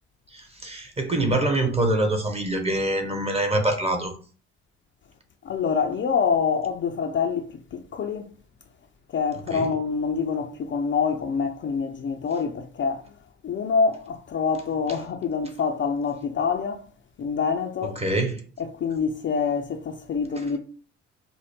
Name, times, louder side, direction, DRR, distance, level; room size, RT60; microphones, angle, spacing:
voice 1, 0.3-4.1 9.5-9.7 17.8-18.4, right 1 dB, 20° right, 1.0 m, -25 dB
voice 2, 5.4-8.2 9.1-13.0 13.4-16.8 17.2-18.0 18.6-20.6, left 5 dB, 35° left, 0.5 m, -26 dB
5.2 x 2.0 x 3.0 m
figure-of-eight pair, 45°, 33 cm